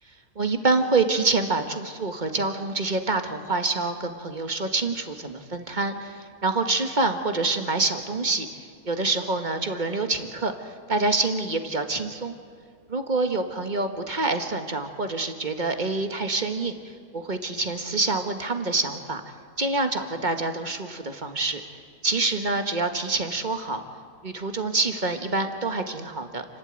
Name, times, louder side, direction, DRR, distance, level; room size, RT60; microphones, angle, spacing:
voice 1, 0.3-8.5 8.8-10.5 10.9-12.3 12.9-16.7 17.1-19.2 19.6-21.6 22.0-23.8 24.2-26.4, right 3 dB, 30° right, 6 dB, 1.5 m, -26 dB
30.0 x 12.0 x 9.0 m, 2.1 s
omnidirectional pair, 1.7 m